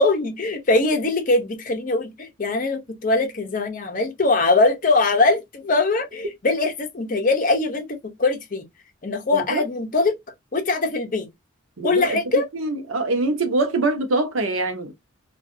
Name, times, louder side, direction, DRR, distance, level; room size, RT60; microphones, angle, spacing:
voice 1, 0.0-8.6 9.0-10.1 10.5-11.3 11.8-12.5, left 3 dB, 40° left, 0.6 m, -21 dB
voice 2, 9.3-9.6 11.8-14.9, right 2 dB, 90° right, 0.7 m, -24 dB
2.5 x 2.3 x 2.5 m
head